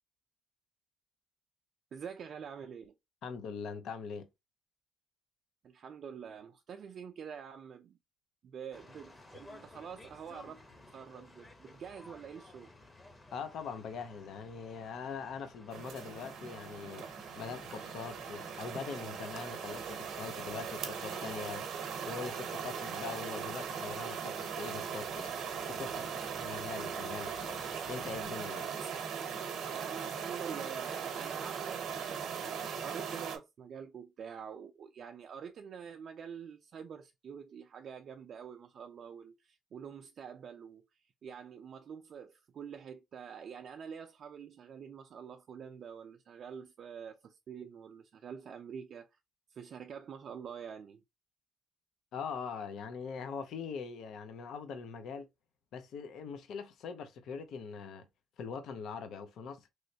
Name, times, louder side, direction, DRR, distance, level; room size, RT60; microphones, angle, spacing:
voice 1, 1.9-3.0 5.6-8.0 8.4-12.7 25.9-26.5 28.8-28.9 29.7-40.8 41.2-49.1 49.5-51.0, right 7 dB, 60° right, 0.4 m, -46 dB
voice 2, 3.2-4.3 13.3-17.0 17.4-21.6 22.1-25.4 25.6-26.1 26.4-27.6 27.9-28.7 52.1-55.3 55.7-58.0 58.4-59.7, left 6 dB, 75° left, 0.6 m, -42 dB
sound 1, 8.7-28.3, left 2 dB, 25° left, 0.9 m, -56 dB
sound 2, 15.7-33.4, right 7 dB, 80° right, 0.8 m, -39 dB
3.1 x 3.0 x 2.7 m
cardioid pair, 90°, 0 cm